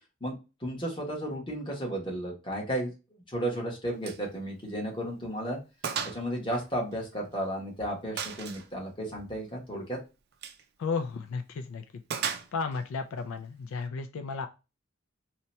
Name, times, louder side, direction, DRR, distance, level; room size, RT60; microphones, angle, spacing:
voice 1, 0.6-2.9 3.3-5.6 6.0-10.0, right 1 dB, 25° left, -1 dB, 1.0 m, -33 dB
Gunshot gunfire, 4.0-4.3 4.6-4.7 5.2-5.3 5.8-6.2 6.5-7.5 8.2-8.7 10.3-10.6 12.1-12.8, right 7 dB, 50° right, 0.4 m, -35 dB
voice 2, 10.8-11.8 12.5-14.5, left 4 dB, 75° left, 7 dB, 0.4 m, -33 dB
2.8 x 2.2 x 4.0 m, 0.28 s
head